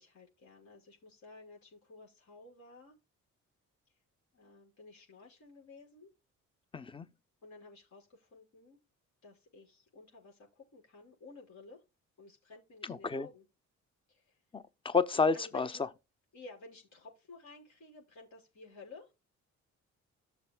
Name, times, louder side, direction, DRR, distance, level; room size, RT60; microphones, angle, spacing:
voice 1, 0.0-3.0 3.9-4.0 4.3-6.1 7.4-8.8 9.2-11.8 12.2-13.4 14.1-14.4 15.3-15.9 16.3-19.1, left 2 dB, 70° left, 5.9 m, -54 dB
voice 2, 6.7-7.1 12.8-13.3 14.5-15.7, left 4 dB, 15° left, 0.7 m, -30 dB
14.0 x 7.0 x 2.3 m
cardioid pair, 90°, 30 cm